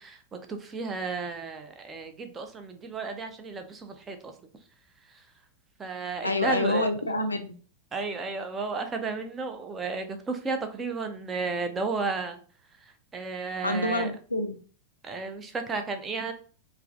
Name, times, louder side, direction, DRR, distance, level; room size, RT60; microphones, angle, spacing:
voice 1, 0.0-4.3 5.0-5.3 5.8-6.9 7.9-12.4 12.8-14.1 15.0-16.3, right 4 dB, 20° right, 6 dB, 0.4 m, -33 dB
voice 2, 6.2-7.5 13.6-14.5, left 2 dB, 80° left, 7 dB, 0.3 m, -27 dB
2.3 x 2.2 x 2.5 m, 0.41 s
figure-of-eight pair, 90°, 0 cm